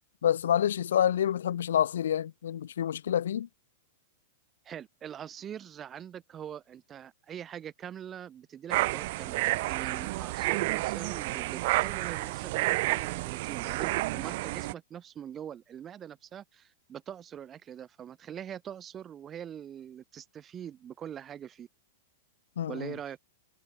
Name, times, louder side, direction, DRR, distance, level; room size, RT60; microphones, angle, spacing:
voice 1, 0.2-3.5 22.6-22.9, left 10 dB, 85° left, 2.7 m, -27 dB
voice 2, 4.6-21.7 22.7-23.2, right 9 dB, 20° right, 6.0 m, -43 dB
sound 1, 8.7-14.7, right 20 dB, 55° right, 1.6 m, -30 dB
hypercardioid pair, 145°, 0 cm